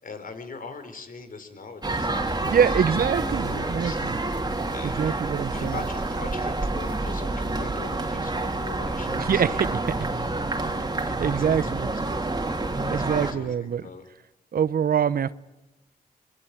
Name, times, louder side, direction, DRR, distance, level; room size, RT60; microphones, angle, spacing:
voice 1, 0.0-2.6 3.2-4.0 4.6-9.6 11.3-12.2 12.9-14.0, left 4 dB, 60° left, 8 dB, 4.6 m, -41 dB
sound 1, 1.8-13.3, right 2 dB, 25° right, 3.2 m, -28 dB
voice 2, 2.4-4.2 4.8-5.8 9.1-9.8 11.0-11.9 12.9-13.9 14.5-15.3, right 8 dB, 65° right, 17 dB, 0.9 m, -25 dB
24.5 x 22.5 x 9.5 m, 0.95 s
cardioid pair, 65°, 16 cm